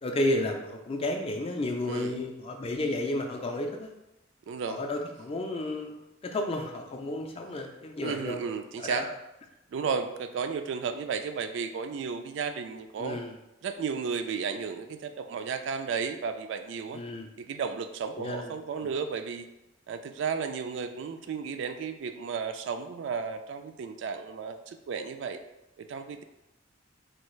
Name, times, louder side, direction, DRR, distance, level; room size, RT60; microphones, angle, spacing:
voice 1, 0.0-3.9 4.7-8.4 8.8-9.1 13.0-13.4 16.9-17.3 18.1-18.5, left 1 dB, 30° left, 3 dB, 0.4 m, -32 dB
voice 2, 4.5-4.8 8.0-9.1 9.7-13.2 13.6-17.0 17.4-19.5 19.9-25.4 25.8-26.2, right 6 dB, 65° right, 8 dB, 0.3 m, -33 dB
4.4 x 2.4 x 3.1 m, 0.91 s
head